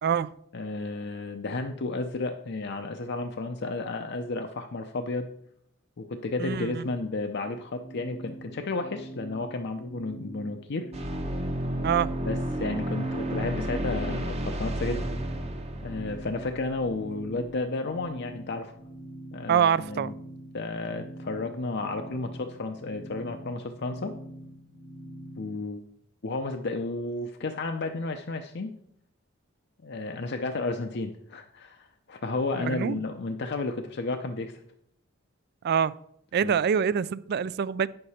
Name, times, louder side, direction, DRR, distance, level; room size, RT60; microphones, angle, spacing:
voice 1, 0.0-0.4 6.4-6.9 11.8-12.1 19.5-20.1 32.5-33.0 35.6-36.0 36.3-37.9, right 7 dB, 50° right, 0.3 m, -25 dB
voice 2, 0.5-5.3 6.0-10.9 12.2-15.1 15.8-18.7 19.3-20.1 20.5-24.1 25.4-25.8 26.2-28.7 29.8-34.6 36.4-36.5, left 3 dB, 55° left, 0.6 m, -32 dB
sound 1, 7.4-25.6, right 1 dB, 90° left, 2.1 m, -45 dB
sound 2, 10.9-17.6, right 1 dB, 30° right, 0.9 m, -32 dB
9.1 x 6.7 x 4.2 m
head